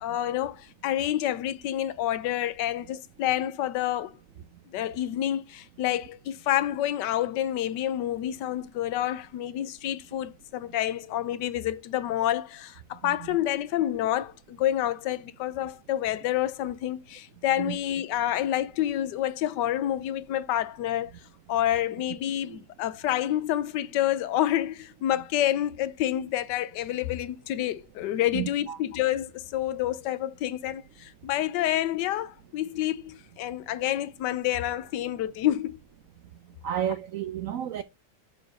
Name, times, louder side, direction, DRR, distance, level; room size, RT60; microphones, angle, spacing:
voice 1, 0.0-4.2 4.7-21.1 21.5-35.8, left 12 dB, 75° left, 1.2 m, -28 dB
voice 2, 28.3-28.8 36.6-37.8, right 10 dB, 85° right, 0.7 m, -31 dB
7.1 x 3.3 x 5.0 m
omnidirectional pair, 2.0 m